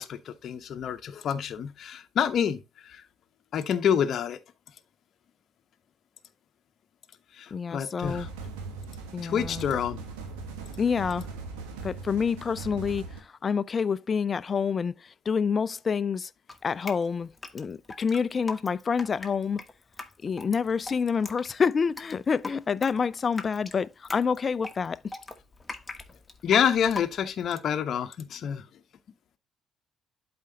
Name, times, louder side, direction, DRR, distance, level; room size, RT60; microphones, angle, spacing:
voice 1, 0.0-3.0 3.5-4.4 7.4-8.3 9.2-10.0 26.4-28.6, left 8 dB, 55° left, 0.9 m, -27 dB
voice 2, 7.5-8.3 9.1-9.7 10.8-11.3 11.8-16.3 16.6-19.6 20.2-25.0, left 6 dB, 40° left, 0.5 m, -28 dB
sound 1, 8.0-13.2, right 4 dB, 80° right, 1.3 m, -39 dB
Drip, 16.5-27.5, left 3 dB, 20° left, 1.3 m, -41 dB
12.0 x 4.4 x 2.8 m
hypercardioid pair, 45°, 0 cm